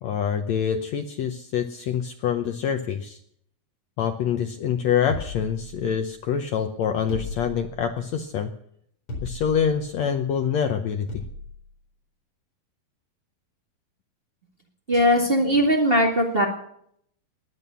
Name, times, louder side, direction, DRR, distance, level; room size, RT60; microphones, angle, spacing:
voice 1, 0.0-3.2 4.0-8.5 9.2-11.2, left 8 dB, 80° left, 6 dB, 1.5 m, -26 dB
sound 1, 5.1-6.2 7.1-8.0 9.1-9.8 11.1-11.6, left 2 dB, 35° left, 5.0 m, -35 dB
voice 2, 14.9-16.5, equal, 25° right, 0 dB, 1.2 m, -19 dB
21.0 x 9.3 x 6.9 m, 0.69 s
omnidirectional pair, 4.4 m